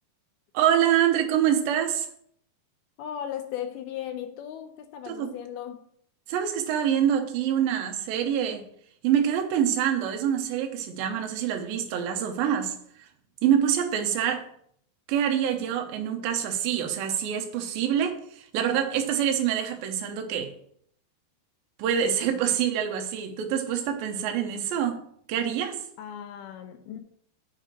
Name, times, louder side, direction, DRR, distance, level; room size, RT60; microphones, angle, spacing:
voice 1, 0.5-2.1 5.1-5.4 6.3-8.7 9.0-13.1 13.4-14.5 15.1-20.5 21.8-25.0 25.3-25.8, right 9 dB, 70° right, 2.5 m, -26 dB
voice 2, 3.0-5.9 26.0-27.0, left 10 dB, 80° left, 2.4 m, -36 dB
6.7 x 4.9 x 6.3 m
omnidirectional pair, 4.8 m